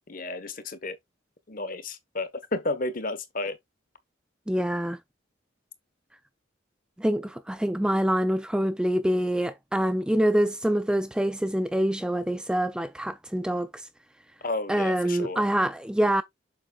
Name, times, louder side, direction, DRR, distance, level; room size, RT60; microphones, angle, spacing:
voice 1, 0.1-1.0 1.5-3.6 14.4-15.4, left 2 dB, 45° left, 1.1 m, -32 dB
voice 2, 4.5-5.0 7.0-13.9 14.7-16.2, right 1 dB, 5° right, 0.3 m, -25 dB
7.3 x 6.7 x 2.3 m
head